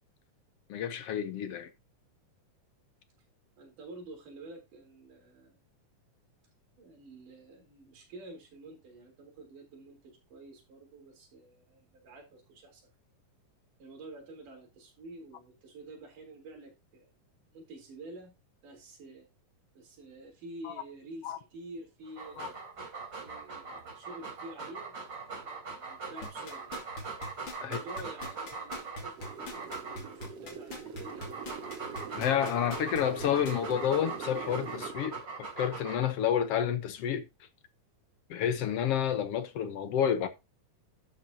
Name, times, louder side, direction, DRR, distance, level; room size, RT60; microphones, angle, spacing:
voice 1, 0.7-1.7 20.6-20.7 21.2-21.4 22.4-22.5 27.6-27.8 32.2-37.3 38.3-40.3, left 9 dB, 65° left, 1.7 m, -30 dB
voice 2, 3.6-5.6 6.8-12.9 13.8-17.1 17.4-19.3 19.7-22.6 23.2-25.0 25.3-26.9 27.6-31.6, right 2 dB, 70° right, 5.4 m, -49 dB
Dog, 22.1-30.3 30.9-36.3, right 4 dB, 35° right, 4.3 m, -41 dB
sound 1, 26.2-33.7 34.2-34.3, left 2 dB, 35° left, 3.1 m, -42 dB
sound 2, 29.1-34.9, right 6 dB, 55° right, 2.0 m, -43 dB
12.5 x 7.1 x 2.8 m
omnidirectional pair, 3.7 m